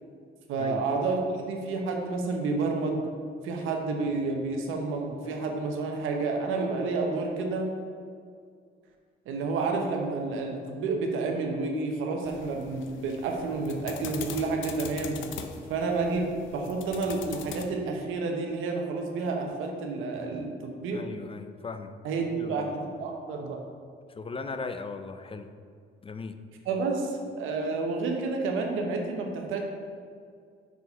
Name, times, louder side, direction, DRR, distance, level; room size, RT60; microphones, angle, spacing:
voice 1, 0.5-1.2 1.5-3.1 3.4-7.7 9.3-15.2 15.7-21.0 22.0-22.7 23.0-23.6 26.7-29.6, right 3 dB, 90° right, 2 dB, 1.0 m, -30 dB
sound 1, 12.2-17.6, left 6 dB, 75° left, 0.7 m, -42 dB
voice 2, 20.9-21.9 22.3-22.7 24.1-25.5 26.0-26.4, left 4 dB, 25° left, 9 dB, 0.5 m, -38 dB
6.1 x 4.7 x 5.4 m, 2.2 s
cardioid pair, 90°, 20 cm